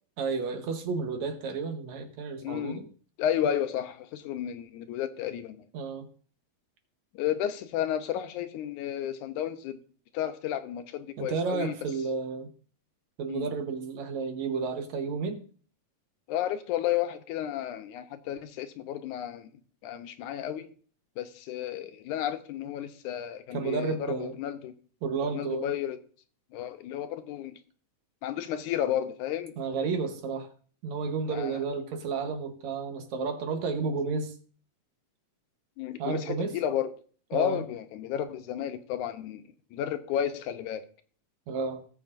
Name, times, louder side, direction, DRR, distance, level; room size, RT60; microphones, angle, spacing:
voice 1, 0.2-2.9 5.7-6.1 11.2-12.5 13.2-15.4 23.5-24.3 25.0-25.7 29.6-30.5 30.8-34.3 36.0-36.6 37.3-37.6 41.5-41.8, right 4 dB, 70° right, 6 dB, 2.3 m, -32 dB
voice 2, 2.4-2.8 3.2-5.6 7.1-9.8 10.1-11.8 13.3-13.5 16.3-19.5 19.8-20.7 21.2-24.7 25.2-26.0 26.5-27.6 28.2-29.5 31.3-31.6 35.8-36.9 37.3-39.4 39.7-40.8, left 10 dB, 80° left, 9 dB, 2.1 m, -32 dB
17.5 x 7.5 x 2.5 m, 0.43 s
omnidirectional pair, 3.6 m